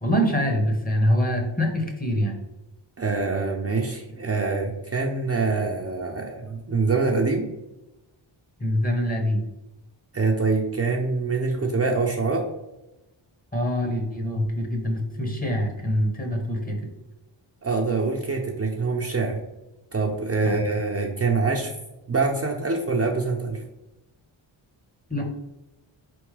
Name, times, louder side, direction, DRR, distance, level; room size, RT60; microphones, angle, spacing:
voice 1, 0.0-2.4 8.6-9.4 13.5-16.8 20.4-20.6 25.1-25.2, equal, 20° left, 2 dB, 1.0 m, -24 dB
voice 2, 3.0-7.5 10.1-12.5 17.6-19.4 19.9-21.7 22.1-23.6, right 4 dB, 30° right, 0 dB, 0.6 m, -25 dB
4.3 x 3.5 x 3.2 m, 0.97 s
wide cardioid pair, 90°, 48 cm